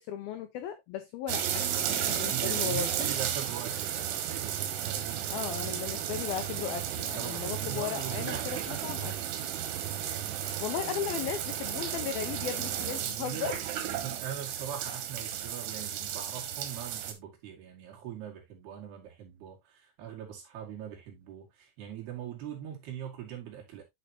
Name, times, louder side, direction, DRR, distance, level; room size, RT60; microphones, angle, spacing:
voice 1, 0.0-3.1 5.3-9.1 9.9-10.1 10.6-13.6, left 9 dB, 85° left, 2.1 m, -36 dB
sound 1, 1.3-17.1, right 10 dB, 85° right, 3.8 m, -33 dB
voice 2, 2.3-5.7 7.2-9.0 13.0-13.5 14.0-23.8, right 9 dB, 60° right, 4.0 m, -42 dB
9.5 x 6.5 x 2.8 m
omnidirectional pair, 5.4 m